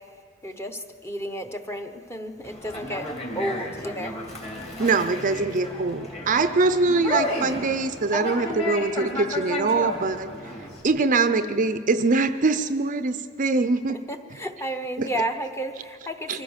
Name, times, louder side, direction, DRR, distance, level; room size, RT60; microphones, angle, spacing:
voice 1, 0.4-3.1 3.3-4.2 13.9-16.4, right 1 dB, 15° left, 6 dB, 0.9 m, -32 dB
Conversation, 2.4-10.8, left 1 dB, 30° left, 3.1 m, -33 dB
voice 2, 4.8-10.3 10.8-14.0 15.0-15.1 16.3-16.4, right 3 dB, 40° right, 11 dB, 0.5 m, -23 dB
24.0 x 15.5 x 7.3 m, 2.1 s
head